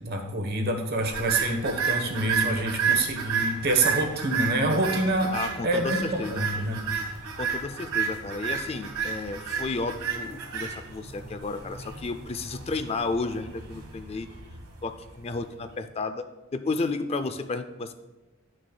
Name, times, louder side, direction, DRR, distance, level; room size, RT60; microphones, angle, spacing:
voice 1, 0.0-5.3 5.6-6.8, right 1 dB, 50° right, 4 dB, 1.0 m, -27 dB
sound 1, 1.1-15.4, right 6 dB, 85° right, 1.4 m, -31 dB
voice 2, 5.3-6.5 7.4-14.3 14.8-16.2 16.5-17.9, left 3 dB, 30° left, 9 dB, 0.4 m, -32 dB
11.0 x 6.2 x 2.3 m, 1.1 s
head